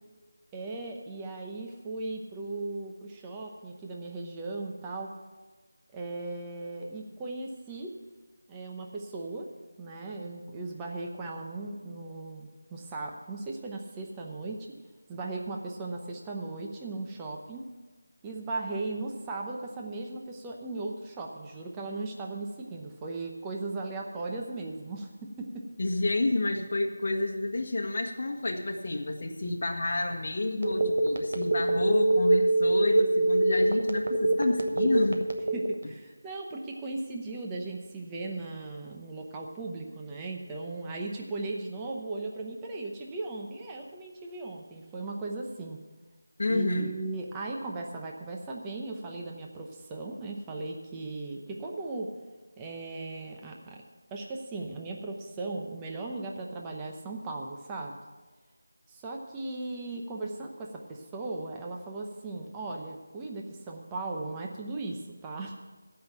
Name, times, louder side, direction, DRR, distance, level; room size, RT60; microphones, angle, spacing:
voice 1, 0.5-5.1 5.9-7.9 8.5-9.5 9.8-14.7 15.1-17.7 18.2-25.6 35.5-45.8 46.5-52.1 52.6-53.8 54.1-58.0 58.9-65.7, right 2 dB, 10° right, 0 dB, 0.8 m, -37 dB
voice 2, 25.8-35.2 46.4-46.9, left 2 dB, 40° left, 0 dB, 1.4 m, -29 dB
Telephone, 30.6-35.9, right 2 dB, 50° right, 1.0 m, -24 dB
14.0 x 5.8 x 8.9 m, 1.3 s
figure-of-eight pair, 175°, 0 cm